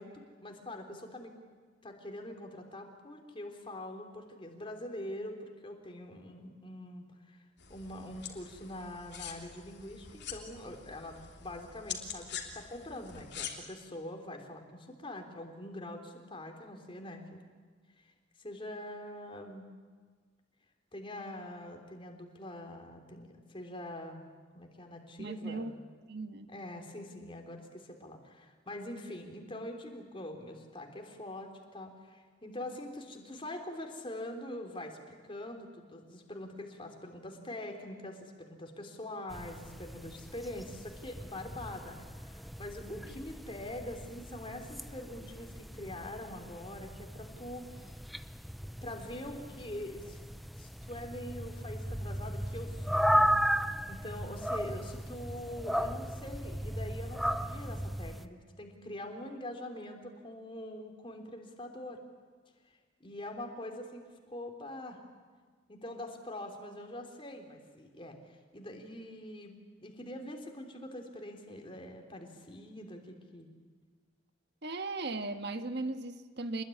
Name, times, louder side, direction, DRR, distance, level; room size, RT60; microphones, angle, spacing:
voice 1, 0.0-1.3 1.8-7.4 7.7-17.4 18.0-18.1 18.4-19.7 20.9-24.2 24.5-25.7 26.5-48.0 48.8-50.2 50.6-53.4 53.9-62.0 63.0-65.0 65.7-69.6 69.8-73.5, left 1 dB, 25° left, 3 dB, 3.4 m, -44 dB
sound 1, 7.6-13.5, left 8 dB, 60° left, 3.2 m, -45 dB
voice 2, 25.2-25.7 26.1-26.5 74.6-76.6, right 2 dB, 60° right, 7 dB, 1.6 m, -37 dB
sound 2, 39.3-58.3, equal, ahead, 0.7 m, -36 dB
26.0 x 21.0 x 10.0 m, 1.5 s
head